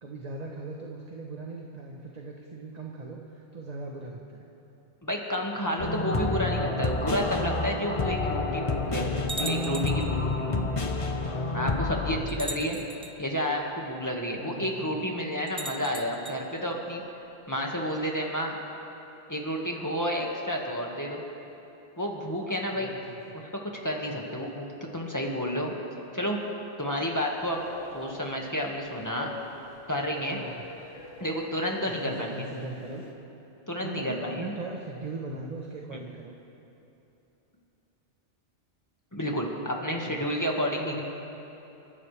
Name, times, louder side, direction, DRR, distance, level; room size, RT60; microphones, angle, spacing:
voice 1, 0.0-4.5 12.0-12.7 14.4-15.0 22.8-23.4 30.2-30.6 31.8-33.0 33.8-36.4 39.8-40.5 40.8-41.0, right 3 dB, 35° right, 0 dB, 1.1 m, -40 dB
voice 2, 5.0-9.1 9.4-10.6 11.5-12.8 13.2-17.0 17.5-18.6 19.3-21.2 22.0-22.9 23.3-24.7 24.9-25.7 26.1-26.4 26.8-27.6 27.9-29.3 29.9-30.4 31.2-32.4 33.7-34.5 35.9-36.0 39.1-41.0, equal, 15° left, -1 dB, 1.8 m, -30 dB
sound 1, 5.8-12.2, left 3 dB, 30° left, 0.8 m, -29 dB
sound 2, 9.3-10.1 11.3-11.4 12.3-13.1 15.5-16.4, right 2 dB, 5° right, 0.9 m, -37 dB
Train, 27.4-33.1, left 3 dB, 85° left, 1.8 m, -46 dB
28.5 x 14.5 x 3.4 m, 2.9 s
omnidirectional pair, 1.2 m